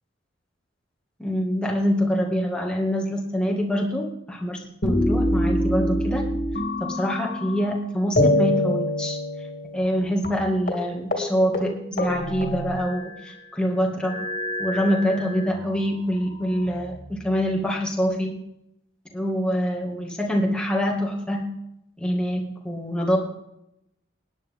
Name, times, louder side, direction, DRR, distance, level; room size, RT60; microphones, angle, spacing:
voice 1, 1.2-6.3 6.8-9.2 9.7-14.2 14.6-18.3 19.1-21.5 22.0-23.2, equal, 5° left, -1 dB, 2.0 m, -25 dB
sound 1, 4.8-7.8 8.2-10.0 10.2-10.4 10.7-10.9 11.1-11.3 11.5-13.3 14.0-15.6 16.3-17.2, left 1 dB, 45° left, 2.4 m, -26 dB
19.0 x 10.0 x 3.7 m, 0.83 s
head